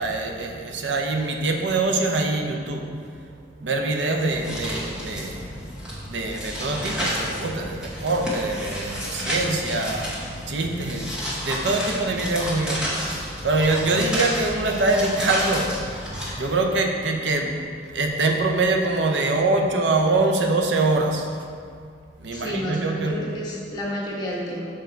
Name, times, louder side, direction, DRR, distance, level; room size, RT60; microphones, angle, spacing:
voice 1, 0.0-2.9 3.6-5.6 6.0-12.8 13.2-16.0 16.3-21.3 22.2-23.2, right 2 dB, 85° right, 2 dB, 0.7 m, -24 dB
sound 1, 4.3-16.3, equal, 5° right, 1.1 m, -31 dB
voice 2, 22.3-24.7, equal, 25° left, -6 dB, 1.3 m, -30 dB
6.2 x 4.6 x 4.5 m, 2.2 s
head